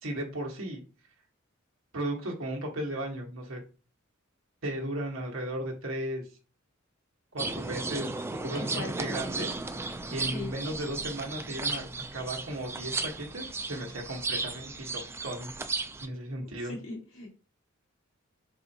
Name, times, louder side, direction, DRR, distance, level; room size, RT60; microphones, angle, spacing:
voice 1, 0.0-0.8 1.9-3.6 4.6-6.3 7.3-9.5 9.8-15.5 16.0-16.8, right 1 dB, 75° right, 0 dB, 1.3 m, -36 dB
sound 1, 7.4-16.1, right 3 dB, 10° right, 0.3 m, -35 dB
voice 2, 8.5-8.9 10.3-10.5 16.4-17.4, left 2 dB, 80° left, -2 dB, 1.9 m, -39 dB
4.3 x 4.1 x 2.7 m, 0.35 s
head